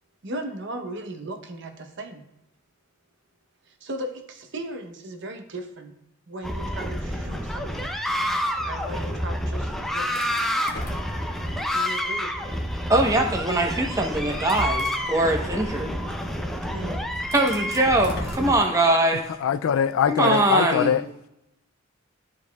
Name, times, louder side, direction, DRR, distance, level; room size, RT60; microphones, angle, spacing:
voice 1, 0.2-2.2 3.7-5.9 6.3-7.9 8.6-10.6 11.7-12.5 16.7-17.1 18.4-18.6, right 1 dB, 60° right, 0.9 m, -37 dB
sound 1, 6.4-18.5, equal, ahead, 0.5 m, -29 dB
sound 2, 10.2-11.8 12.3-12.4 13.6-13.7 14.3-15.3 16.7-16.8 17.2-19.2, left 1 dB, 50° left, 1.2 m, -38 dB
voice 2, 12.9-16.0 17.3-19.2 20.1-21.0, right 1 dB, 15° right, 0.9 m, -22 dB
voice 3, 19.4-21.0, left 8 dB, 75° left, 0.3 m, -22 dB
12.0 x 4.9 x 2.3 m
head